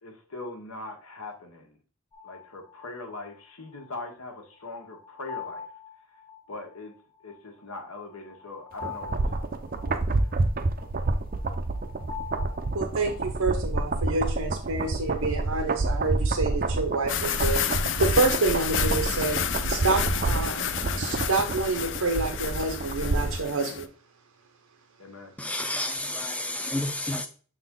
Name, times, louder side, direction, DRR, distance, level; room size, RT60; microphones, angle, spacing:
voice 1, 0.0-1.8 2.2-5.6 6.5-7.0 7.2-9.4 9.8-10.3 25.0-25.4, left 2 dB, 75° left, 3 dB, 1.4 m, -41 dB
sound 1, 2.1-13.4, left 7 dB, 25° left, 1.3 m, -44 dB
sound 2, 8.8-23.5 23.8-23.9, right 2 dB, 40° right, 0.5 m, -28 dB
voice 2, 12.7-17.6 18.0-19.4 19.7-20.6 21.0-23.9, right 3 dB, 85° right, 3 dB, 0.9 m, -28 dB
sound 3, 17.1-23.8, left 9 dB, 55° left, 0.5 m, -31 dB
voice 3, 25.4-27.3, left 1 dB, 5° left, 7 dB, 0.6 m, -30 dB
6.7 x 4.0 x 3.7 m, 0.39 s
head